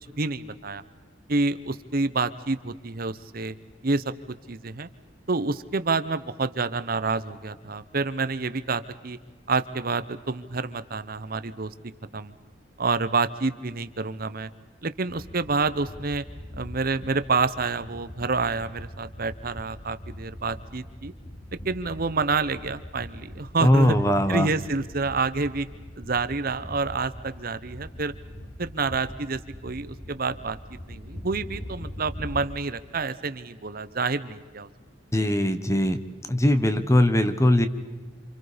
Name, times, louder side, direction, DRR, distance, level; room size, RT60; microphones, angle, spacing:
voice 1, 0.2-0.8 1.3-3.5 3.8-4.1 4.5-4.9 5.3-9.2 9.5-11.7 12.1-12.3 12.8-14.5 14.8-16.2 16.6-21.1 21.5-24.0 24.3-25.7 26.0-28.1 28.6-30.6 30.9-34.7, right 4 dB, 50° right, 13 dB, 0.9 m, -28 dB
sound 1, 15.1-32.5, equal, 40° left, 3.3 m, -42 dB
voice 2, 23.6-24.5 35.1-36.0 36.3-37.7, left 1 dB, 15° left, 10 dB, 1.2 m, -20 dB
28.0 x 27.5 x 5.1 m, 1.3 s
head